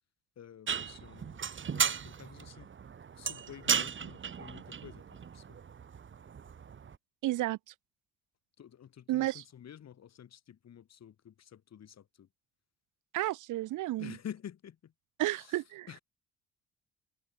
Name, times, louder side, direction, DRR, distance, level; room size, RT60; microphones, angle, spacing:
voice 1, 0.4-2.7 3.1-5.6 8.6-12.3 14.0-14.9 15.2-15.5 15.9-16.0, left 9 dB, 60° left, 3.7 m, -49 dB
sound 1, 0.7-7.0, right 7 dB, 40° right, 1.5 m, -36 dB
voice 2, 7.2-7.6 9.1-9.4 13.1-14.2 15.2-16.0, right 16 dB, 80° right, 1.0 m, -32 dB
cardioid pair, 90°, 30 cm